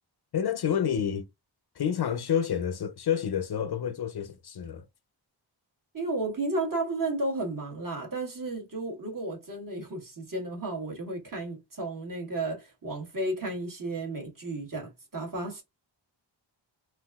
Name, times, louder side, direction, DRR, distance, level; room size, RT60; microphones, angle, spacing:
voice 1, 0.3-1.3 1.8-4.9, left 8 dB, 55° left, 0.5 m, -29 dB
voice 2, 5.9-15.6, right 2 dB, 45° right, 1.3 m, -33 dB
3.8 x 2.4 x 2.3 m
wide cardioid pair, 85°, 46 cm